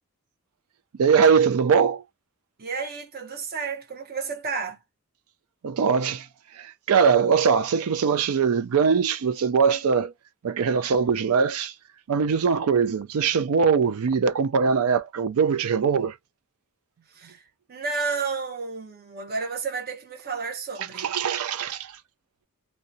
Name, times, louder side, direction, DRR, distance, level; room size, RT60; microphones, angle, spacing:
voice 1, 1.0-2.0 5.6-6.3 6.6-10.1 10.4-11.7 12.1-16.1 21.0-21.9, right 6 dB, 80° right, 0.4 m, -21 dB
voice 2, 2.6-4.8 17.1-21.1, right 4 dB, 45° right, 0.7 m, -32 dB
2.7 x 2.2 x 2.5 m
head